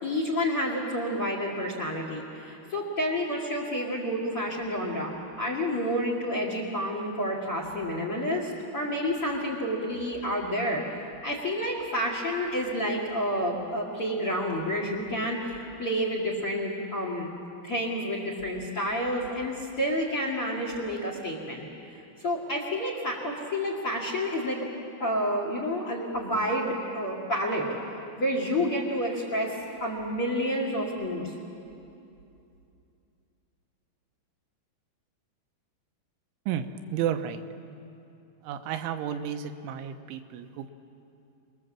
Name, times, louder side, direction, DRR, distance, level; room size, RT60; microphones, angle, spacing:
voice 1, 0.0-10.8 11.2-17.3 17.6-27.7 28.2-31.3, equal, 40° left, 0 dB, 2.1 m, -29 dB
voice 2, 36.5-37.4 38.4-40.7, right 9 dB, 80° right, 7 dB, 3.3 m, -32 dB
27.0 x 20.5 x 7.6 m, 2.7 s
omnidirectional pair, 5.6 m